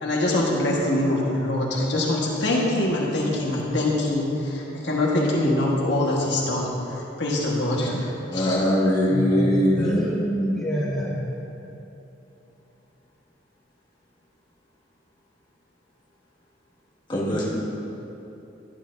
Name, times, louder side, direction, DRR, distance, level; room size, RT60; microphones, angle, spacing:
voice 1, 0.0-8.6, left 1 dB, 70° left, -3 dB, 1.5 m, -24 dB
voice 2, 8.3-10.0 17.1-17.5, left 1 dB, 25° left, -6 dB, 2.0 m, -21 dB
voice 3, 9.1-11.3 17.3-17.4, equal, 5° left, -7 dB, 1.3 m, -26 dB
12.0 x 11.5 x 2.7 m, 3.0 s
head